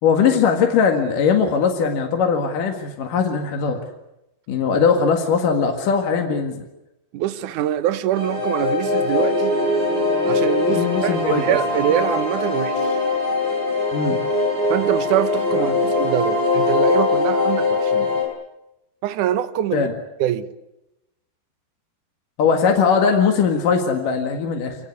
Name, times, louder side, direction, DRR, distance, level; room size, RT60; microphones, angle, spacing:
voice 1, 0.0-3.8 4.5-6.6 10.7-11.6 13.9-14.2 15.6-15.8 19.7-19.9 22.4-24.8, left 6 dB, 55° left, 3.2 m, -20 dB
voice 2, 7.1-9.5 10.3-13.0 14.7-18.2 19.0-19.9 20.2-20.5, right 11 dB, 70° right, 1.9 m, -24 dB
sound 1, 8.1-18.2, left 3 dB, 40° right, 9.1 m, -21 dB
26.0 x 19.0 x 9.6 m
omnidirectional pair, 4.9 m